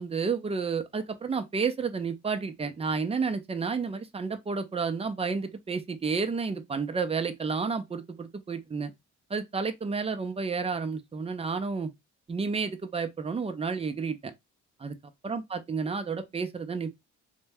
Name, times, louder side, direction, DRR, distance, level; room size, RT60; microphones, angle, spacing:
voice 1, 0.0-8.9 9.3-11.9 12.3-14.3 14.8-14.9 15.2-16.9, right 5 dB, 20° right, 0.5 m, -31 dB
2.6 x 2.2 x 3.2 m
cardioid pair, 90°, 30 cm